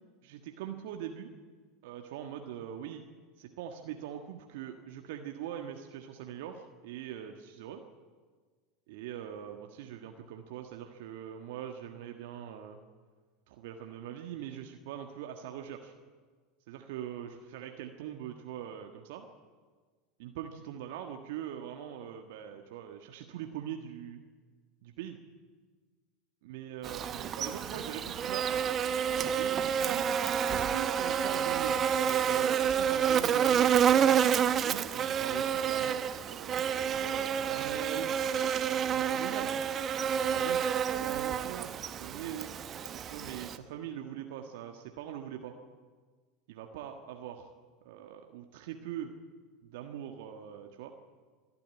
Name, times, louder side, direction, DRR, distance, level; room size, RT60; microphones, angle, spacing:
voice 1, 0.2-1.3 1.8-3.0 3.4-7.8 8.9-12.8 13.5-15.9 16.7-19.2 20.2-24.2 24.8-25.2 26.4-28.5 29.3-30.1 30.5-38.1 38.7-39.5 40.3-40.7 41.0-41.7 42.0-42.5 42.7-45.5 46.5-47.5 47.8-49.1 49.6-50.9, right 10 dB, 65° right, 4 dB, 1.5 m, -42 dB
Buzz, 26.8-43.6, right 8 dB, 35° right, 1.1 m, -29 dB
26.0 x 10.5 x 9.5 m, 1.5 s
hypercardioid pair, 80°, 0 cm